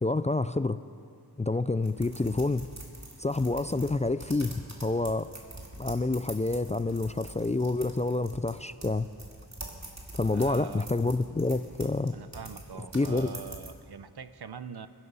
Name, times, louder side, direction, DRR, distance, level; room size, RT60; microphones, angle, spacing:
voice 1, 0.0-0.8 1.4-2.7 3.2-5.3 5.8-9.1 10.1-12.1 12.9-13.3, left 2 dB, 20° left, 13 dB, 0.3 m, -28 dB
sound 1, 1.8-13.7, right 1 dB, 45° right, 2.4 m, -45 dB
voice 2, 10.3-10.9 11.2-11.3 12.1-14.9, right 6 dB, 70° right, 12 dB, 0.7 m, -43 dB
21.0 x 12.5 x 5.5 m, 2.4 s
wide cardioid pair, 40°, 39 cm